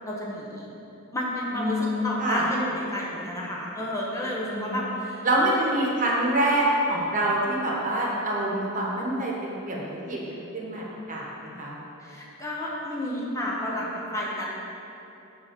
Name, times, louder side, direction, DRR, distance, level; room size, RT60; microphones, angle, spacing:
voice 1, 0.0-0.7 1.1-5.7 12.0-14.5, left 1 dB, 15° left, -4 dB, 0.9 m, -31 dB
voice 2, 1.5-2.4 4.5-4.8 5.2-11.7, right 1 dB, 40° right, -3 dB, 1.3 m, -26 dB
7.8 x 3.8 x 6.6 m, 2.9 s
head